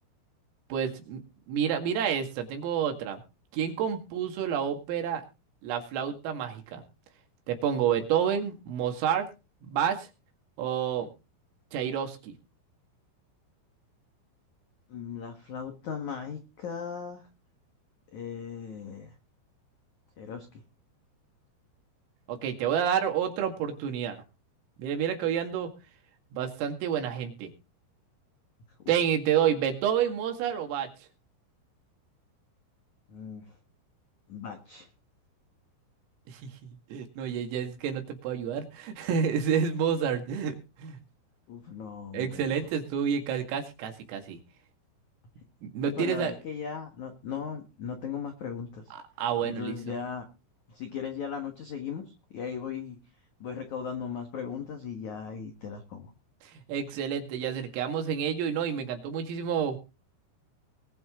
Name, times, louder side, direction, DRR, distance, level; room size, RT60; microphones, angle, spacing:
voice 1, 0.7-1.2 1.5-3.2 3.5-5.2 5.6-6.8 7.5-9.3 9.6-10.1 10.6-11.1 11.7-12.3 22.3-24.2 24.8-25.7 26.3-27.5 28.9-30.9 36.3-36.5 36.9-41.0 42.1-44.4 45.6-46.3 48.9-49.8 56.4-59.8, right 8 dB, 80° right, 5 dB, 4.6 m, -29 dB
voice 2, 14.9-17.3 18.1-19.2 20.2-20.6 33.1-33.6 34.3-34.9 41.5-42.7 45.8-48.9 49.4-50.3 50.7-53.0 53.4-56.1, left 7 dB, 65° left, 5 dB, 1.9 m, -38 dB
21.0 x 8.0 x 3.8 m, 0.30 s
omnidirectional pair, 6.0 m